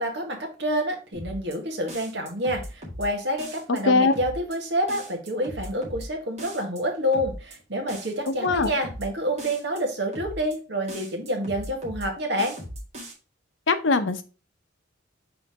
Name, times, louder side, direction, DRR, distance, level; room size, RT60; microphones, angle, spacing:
voice 1, 0.0-12.6, equal, 60° right, 3 dB, 1.7 m, -28 dB
sound 1, 1.1-1.6 1.9-3.1 3.4-3.8 4.1-4.6 4.9-6.1 6.4-6.8 7.1-7.6 7.9-9.1 9.4-9.8 10.1-10.6 10.9-12.1 12.4-13.1, equal, 35° right, 1.9 m, -38 dB
voice 2, 13.7-14.2, left 3 dB, 75° left, 9 dB, 0.8 m, -20 dB
5.8 x 3.9 x 4.7 m, 0.32 s
head